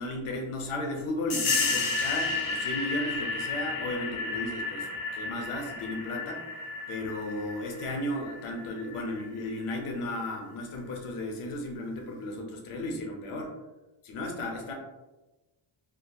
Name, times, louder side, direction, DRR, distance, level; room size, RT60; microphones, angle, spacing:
voice 1, 0.0-4.9 5.1-6.4 6.9-13.6 14.0-14.7, left 1 dB, 85° left, 1 dB, 0.7 m, -34 dB
sound 1, 1.3-9.6, left 3 dB, 45° left, 0.5 m, -32 dB
2.7 x 2.4 x 2.2 m, 1.1 s
wide cardioid pair, 115°, 49 cm